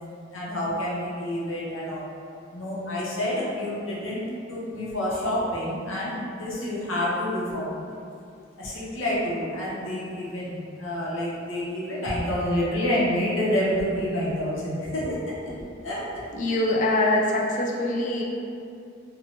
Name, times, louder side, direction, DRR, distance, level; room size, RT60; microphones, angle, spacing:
voice 1, 0.3-2.0 2.5-7.8 8.6-15.2 15.5-16.3, left 1 dB, 80° left, -6 dB, 0.7 m, -28 dB
voice 2, 16.3-18.2, left 1 dB, 40° left, -2 dB, 0.3 m, -23 dB
2.9 x 2.1 x 2.7 m, 2.5 s
head